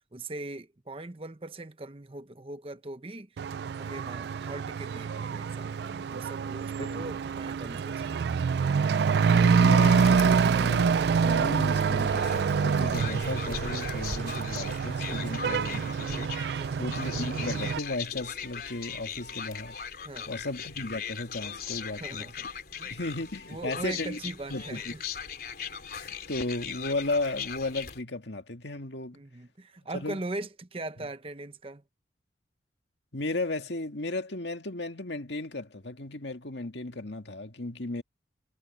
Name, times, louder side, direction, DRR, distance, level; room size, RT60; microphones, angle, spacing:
voice 1, 0.1-3.3 3.8-8.4 16.6-16.9 20.0-20.3 22.0-22.4 22.8-23.0 23.5-25.0 29.1-31.8, right 2 dB, 30° right, 0.9 m, -40 dB
Truck / Accelerating revving vroom, 3.4-17.8, right 6 dB, 60° right, 0.3 m, -26 dB
voice 2, 9.3-16.4 16.8-19.8 20.3-22.3 22.9-24.2 24.5-24.9 25.9-29.2 29.9-30.2 33.1-38.0, left 2 dB, 75° left, 2.0 m, -35 dB
sound 1, 10.0-28.0, left 6 dB, 55° left, 4.2 m, -39 dB
head